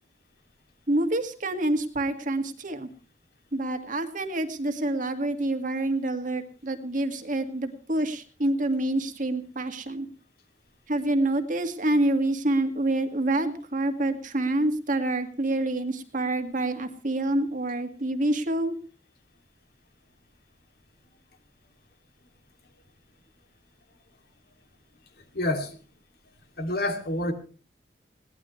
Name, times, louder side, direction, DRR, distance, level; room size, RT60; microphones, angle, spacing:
voice 1, 0.9-2.9 3.5-10.1 10.9-18.8, right 1 dB, 45° right, 7 dB, 2.0 m, -27 dB
voice 2, 25.3-25.8 26.6-27.3, left 1 dB, 60° left, 6 dB, 2.7 m, -28 dB
21.5 x 17.5 x 3.2 m, 0.36 s
head